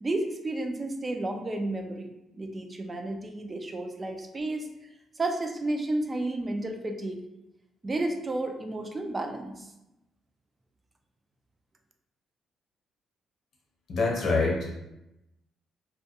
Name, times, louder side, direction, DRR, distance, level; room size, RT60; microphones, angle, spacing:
voice 1, 0.0-2.1 2.3-4.7 5.2-7.2 7.8-9.7, right 2 dB, 25° right, 5 dB, 0.3 m, -32 dB
voice 2, 13.9-14.6, left 3 dB, 65° left, -3 dB, 0.8 m, -25 dB
2.2 x 2.2 x 2.8 m, 0.91 s
cardioid pair, 90°, 0 cm